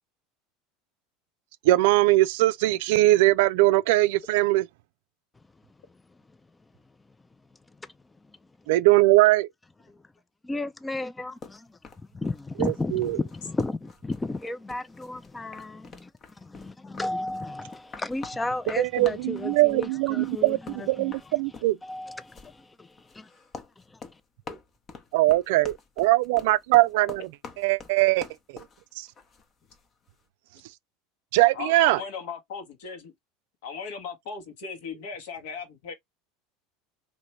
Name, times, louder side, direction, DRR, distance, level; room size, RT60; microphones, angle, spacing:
voice 1, 1.6-4.7 8.7-9.5 12.6-13.2 18.8-21.8 25.1-27.3 27.6-28.3 29.0-29.1 31.3-32.0, right 18 dB, 75° right, 0.3 m, -21 dB
voice 2, 10.4-11.8 12.1-16.1 16.4-21.1 21.8-23.3 23.9-24.0, left 2 dB, 15° left, 0.3 m, -33 dB
sound 1, 11.4-29.9, left 4 dB, 35° left, 0.7 m, -46 dB
voice 3, 31.5-33.1 33.6-35.9, left 6 dB, 75° left, 1.2 m, -37 dB
3.1 x 2.6 x 2.9 m
hypercardioid pair, 95°, 0 cm